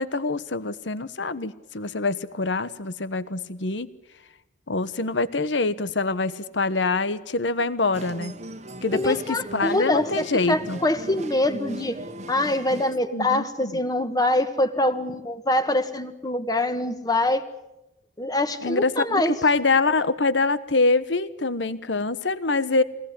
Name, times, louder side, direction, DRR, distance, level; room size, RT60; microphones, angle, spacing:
voice 1, 0.0-3.9 4.7-8.3 8.8-10.8 13.1-13.7 18.6-22.8, left 3 dB, 80° left, 14 dB, 1.2 m, -25 dB
sound 1, 7.9-12.9, right 1 dB, 40° right, 1.2 m, -38 dB
voice 2, 8.9-12.0 12.3-17.5 18.2-19.3, left 1 dB, 20° left, 8 dB, 1.5 m, -24 dB
23.5 x 18.5 x 9.9 m, 0.93 s
head